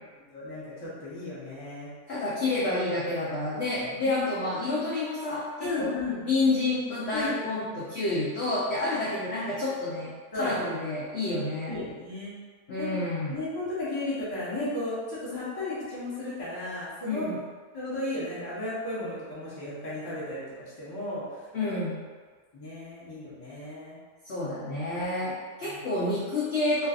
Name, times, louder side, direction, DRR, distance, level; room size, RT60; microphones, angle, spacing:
voice 1, 0.3-1.9 3.8-4.2 5.6-6.2 7.1-7.3 10.3-10.6 11.7-12.3 12.8-13.0 13.3-17.3 17.7-21.5 22.5-24.0 24.9-25.0 25.6-25.8, left 2 dB, 25° left, -9 dB, 0.6 m, -34 dB
voice 2, 2.1-5.9 6.2-11.7 12.7-13.4 17.0-17.4 21.5-22.0 24.2-26.9, left 2 dB, 65° left, -8 dB, 0.6 m, -29 dB
3.1 x 2.6 x 2.4 m, 1.5 s
omnidirectional pair, 1.7 m